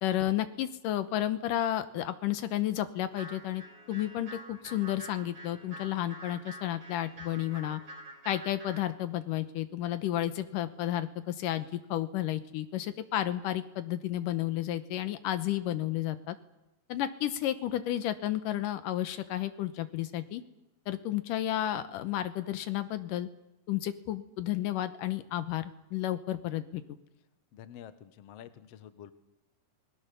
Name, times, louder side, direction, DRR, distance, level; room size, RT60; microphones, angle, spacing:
voice 1, 0.0-7.8 8.3-16.4 16.9-20.4 20.9-23.3 23.7-27.0, left 13 dB, 75° left, 11 dB, 2.5 m, -32 dB
sound 1, 3.1-8.9, right 1 dB, 30° right, 2.8 m, -47 dB
voice 2, 27.5-29.1, left 10 dB, 60° left, 11 dB, 1.9 m, -48 dB
27.5 x 21.0 x 6.9 m, 0.95 s
omnidirectional pair, 3.9 m